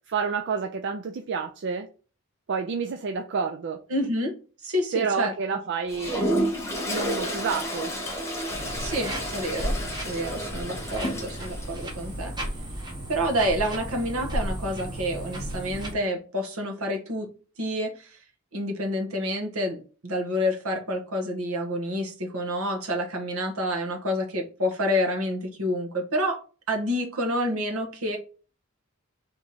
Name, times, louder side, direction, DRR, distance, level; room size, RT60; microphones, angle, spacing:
voice 1, 0.1-1.9 2.5-3.8 4.9-6.5 6.8-7.9, right 5 dB, 55° right, 0.4 m, -29 dB
voice 2, 3.9-4.4 4.6-5.3 8.8-9.8 10.0-12.3 13.1-17.3 17.6-18.2 18.5-26.4 26.7-28.2, equal, 75° right, 1.2 m, -28 dB
Toilet flush, 5.9-11.7, equal, 15° left, 1.1 m, -30 dB
sound 1, 8.5-15.9, right 1 dB, 20° right, 1.0 m, -34 dB
3.5 x 3.0 x 4.1 m
head